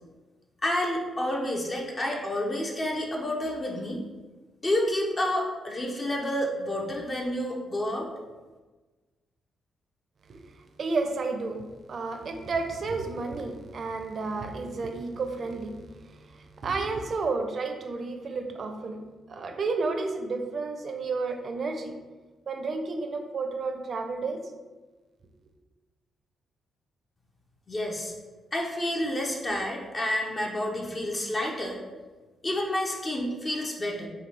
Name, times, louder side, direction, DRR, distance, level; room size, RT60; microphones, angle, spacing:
voice 1, 0.6-4.0 4.6-8.1 27.7-28.1 28.5-31.8 32.4-34.1, left 1 dB, 35° left, -1 dB, 0.8 m, -29 dB
voice 2, 10.8-11.6 11.9-19.0 19.3-21.9 22.5-24.4, right 3 dB, 55° right, 5 dB, 0.5 m, -31 dB
6.5 x 2.3 x 3.3 m, 1.3 s
cardioid pair, 95°, 0 cm